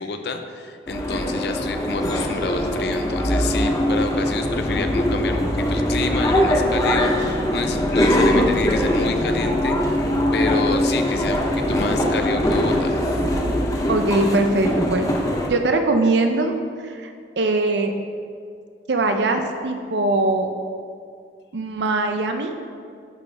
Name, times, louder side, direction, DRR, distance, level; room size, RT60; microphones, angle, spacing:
voice 1, 0.0-9.7 10.3-13.0, left 4 dB, 70° left, 7 dB, 0.5 m, -29 dB
sound 1, 0.9-15.5, left 1 dB, 20° left, 0.6 m, -21 dB
voice 2, 13.9-15.1 15.5-16.5 16.8-17.9 18.9-20.5 21.5-22.5, right 2 dB, 85° right, 5 dB, 0.6 m, -21 dB
11.0 x 4.3 x 3.4 m, 2.2 s
head